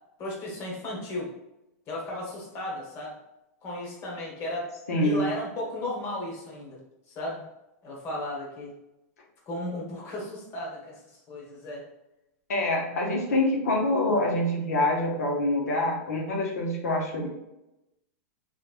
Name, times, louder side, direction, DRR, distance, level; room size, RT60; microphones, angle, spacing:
voice 1, 0.2-1.3 1.9-3.2 3.6-4.7 5.0-6.8 7.1-7.4 7.8-8.7 9.5-11.0 11.3-11.9, left 1 dB, 35° left, -3 dB, 1.3 m, -35 dB
voice 2, 4.9-5.3 12.5-17.3, left 1 dB, 90° left, -1 dB, 0.8 m, -25 dB
3.4 x 3.1 x 2.5 m, 0.91 s
hypercardioid pair, 135°, 8 cm